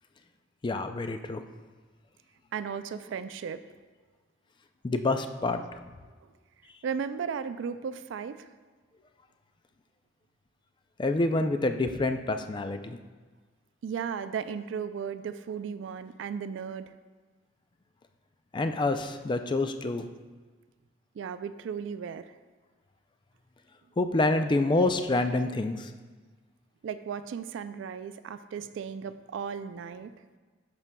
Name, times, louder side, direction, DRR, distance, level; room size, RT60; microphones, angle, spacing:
voice 1, 0.6-1.4 4.8-5.8 11.0-13.0 18.5-20.1 24.0-25.9, left 2 dB, 25° left, 8 dB, 0.3 m, -27 dB
voice 2, 2.5-3.6 6.8-8.5 13.8-16.9 21.2-22.3 26.8-30.1, right 7 dB, 70° right, 12 dB, 0.3 m, -35 dB
11.0 x 6.0 x 2.2 m, 1.4 s
head